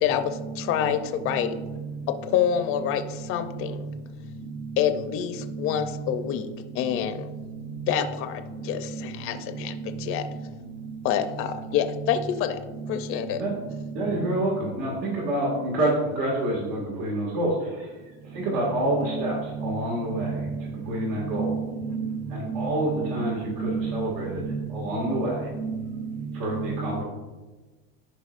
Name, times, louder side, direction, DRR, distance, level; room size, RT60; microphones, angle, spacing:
voice 1, 0.0-1.6 2.3-3.9 4.8-6.5 6.7-7.3 7.9-10.3 11.0-12.6 12.9-13.4, left 9 dB, 45° left, 0.5 m, -27 dB
voice 2, 13.9-20.5 20.7-21.5 22.3-24.4 24.7-25.5 26.3-27.0, right 1 dB, 75° right, 2.0 m, -28 dB
voice 3, 20.9-22.7 23.2-24.1 24.5-24.6 25.1-25.2 25.6-25.8 26.5-26.8, right 5 dB, 50° right, 0.9 m, -31 dB
11.5 x 4.8 x 2.5 m
supercardioid pair, 135°, 32 cm